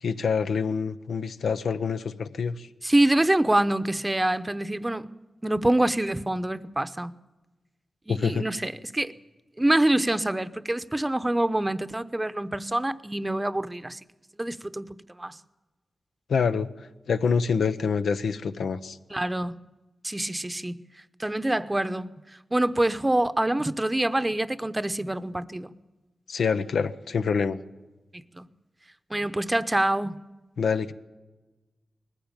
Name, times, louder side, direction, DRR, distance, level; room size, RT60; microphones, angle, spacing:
voice 1, 0.0-2.7 8.1-8.5 16.3-16.7 17.1-19.0 26.3-27.6 30.6-30.9, left 5 dB, 90° left, 0.8 m, -26 dB
voice 2, 2.8-5.1 5.4-7.1 8.1-9.1 9.6-14.0 14.4-15.4 19.1-19.6 20.0-20.8 21.2-22.1 22.5-25.7 28.3-28.5 29.1-30.2, right 1 dB, 15° right, 0.8 m, -25 dB
20.0 x 15.0 x 8.9 m
cardioid pair, 65°, 0 cm